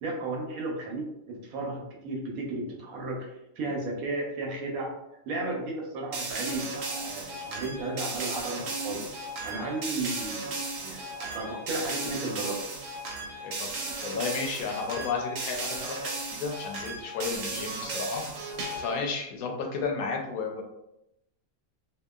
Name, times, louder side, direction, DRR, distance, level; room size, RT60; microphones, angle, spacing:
voice 1, 0.0-4.9 5.3-9.1 9.4-12.6 17.5-17.7, right 2 dB, 85° right, 0 dB, 1.1 m, -34 dB
sound 1, 6.1-19.0, right 2 dB, 70° right, 1.0 m, -35 dB
voice 2, 14.0-18.2 18.8-20.6, left 5 dB, 85° left, 1 dB, 1.0 m, -33 dB
2.8 x 2.3 x 2.3 m, 0.86 s
omnidirectional pair, 1.5 m